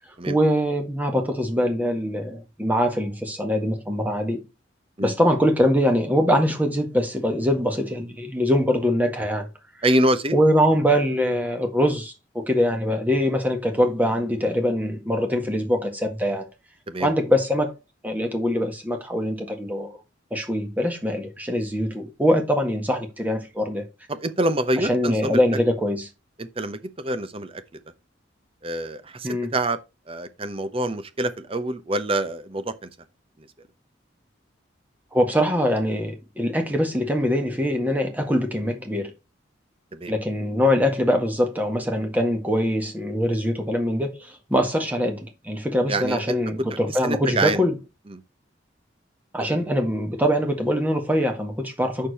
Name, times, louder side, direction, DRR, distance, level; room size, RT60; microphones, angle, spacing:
voice 1, 0.3-4.4 5.0-9.5 10.3-16.5 17.0-17.7 18.0-20.0 20.3-23.8 24.8-26.1 29.2-29.5 35.1-39.1 40.1-47.7 49.3-52.1, equal, 10° right, 1.7 m, -23 dB
voice 2, 9.8-10.3 16.9-17.1 24.1-25.4 26.4-27.6 28.6-29.8 30.1-32.9 39.9-40.1 45.9-46.4 47.0-47.6 48.1-48.2, right 1 dB, 30° right, 0.8 m, -26 dB
7.4 x 6.6 x 4.2 m
head